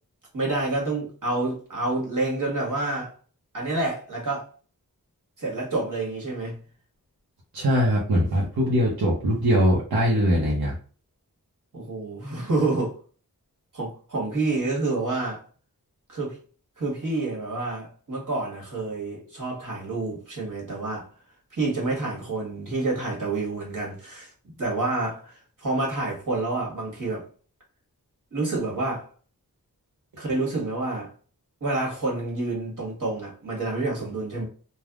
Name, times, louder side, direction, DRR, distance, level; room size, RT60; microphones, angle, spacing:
voice 1, 0.3-3.1 3.5-4.5 5.4-6.6 11.7-13.0 13.7-15.4 16.1-16.4 16.8-21.1 21.5-24.3 24.6-27.3 28.3-29.1 30.2-31.1 31.6-34.4, right 2 dB, 60° right, 1.4 m, -28 dB
voice 2, 7.5-10.7, equal, 85° right, 0.7 m, -21 dB
3.4 x 2.1 x 2.3 m
wide cardioid pair, 70°, 36 cm